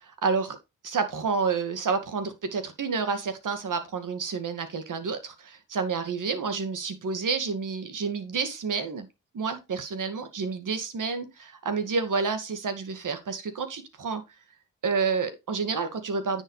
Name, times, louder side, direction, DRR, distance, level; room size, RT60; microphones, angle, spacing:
voice 1, 0.0-0.6 0.8-9.1 9.3-14.2 14.8-16.4, right 5 dB, 75° right, 2.1 m, -29 dB
10.0 x 6.5 x 3.3 m
cardioid pair, 65°, 32 cm